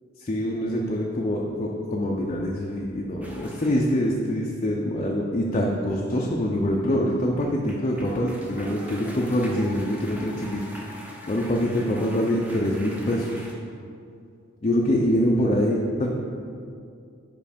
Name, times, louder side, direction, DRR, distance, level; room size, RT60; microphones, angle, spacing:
voice 1, 0.2-10.6 11.3-13.4 14.6-16.1, equal, 35° left, -2 dB, 0.5 m, -25 dB
sound 1, 3.2-3.9 7.3-13.5, equal, 10° right, 0.7 m, -43 dB
5.3 x 5.2 x 5.1 m, 2.3 s
head